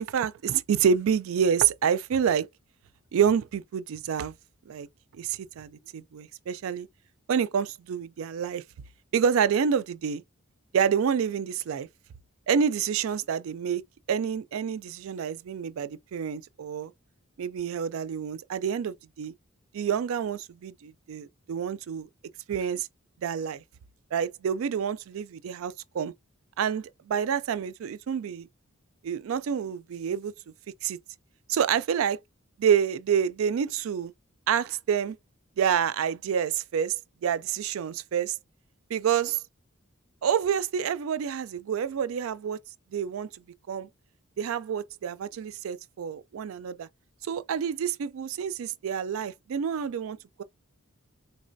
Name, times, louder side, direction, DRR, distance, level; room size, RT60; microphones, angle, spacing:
voice 1, 0.0-2.5 3.1-4.3 4.7-4.9 5.2-6.9 7.3-8.6 9.1-10.2 10.7-11.9 12.5-13.8 14.1-16.9 17.4-19.3 19.7-22.1 22.5-22.9 23.2-23.6 24.1-26.1 26.6-28.5 29.0-30.3 30.8-31.0 31.5-32.2 32.6-34.1 34.5-35.2 35.6-38.3 38.9-39.4 40.2-42.6 42.9-43.3 43.7-43.9 44.4-46.9 47.2-50.4, right 7 dB, 75° right, 0.3 m, -28 dB
3.7 x 3.2 x 2.5 m
head